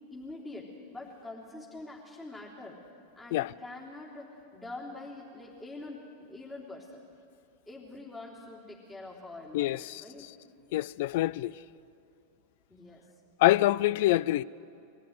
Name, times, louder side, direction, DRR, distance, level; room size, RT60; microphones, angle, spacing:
voice 1, 0.1-2.8 3.2-7.0 7.7-10.3 12.7-13.0, left 2 dB, 15° left, 3.5 m, -45 dB
voice 2, 9.5-10.0 10.7-11.5 13.4-14.4, left 15 dB, 65° left, 0.4 m, -25 dB
21.5 x 14.0 x 9.6 m
hypercardioid pair, 110°, 0 cm